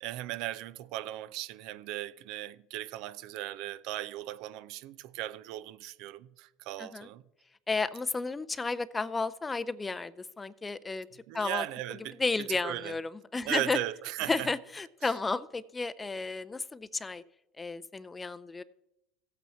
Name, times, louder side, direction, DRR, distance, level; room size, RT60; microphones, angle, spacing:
voice 1, 0.0-7.2 11.3-12.2 12.5-12.9 13.4-14.5 15.0-15.1, right 14 dB, 65° right, 0.5 m, -37 dB
voice 2, 7.7-11.1 11.3-11.7 12.2-13.8 14.3-17.2 17.6-18.6, left 3 dB, 15° left, 0.5 m, -32 dB
15.0 x 8.2 x 4.4 m
supercardioid pair, 110°, 0 cm